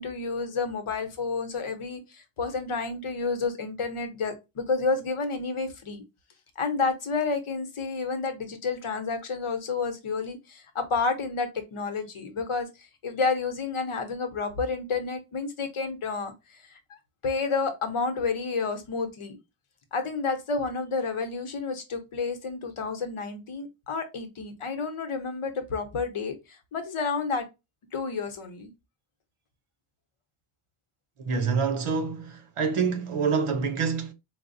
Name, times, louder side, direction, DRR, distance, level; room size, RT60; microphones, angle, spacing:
voice 1, 0.0-6.0 6.6-17.0 17.2-19.4 19.9-27.5 27.9-28.7, left 4 dB, 80° left, 0.9 m, -30 dB
voice 2, 31.2-34.1, right 5 dB, 85° right, 0.8 m, -27 dB
4.3 x 2.0 x 2.5 m
wide cardioid pair, 85°, 50 cm